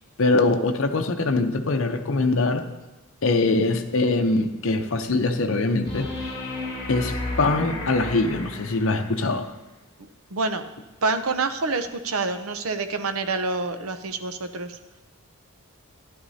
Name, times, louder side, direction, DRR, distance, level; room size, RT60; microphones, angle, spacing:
voice 1, 0.2-2.7 3.2-6.3 6.9-9.5, left 3 dB, 60° left, 5 dB, 0.7 m, -23 dB
sound 1, 5.8-9.2 11.8-11.9, left 2 dB, 25° left, 1.9 m, -33 dB
voice 2, 10.3-10.6 11.0-14.8, right 3 dB, 75° right, 9 dB, 0.7 m, -27 dB
13.0 x 11.5 x 2.8 m, 1.1 s
head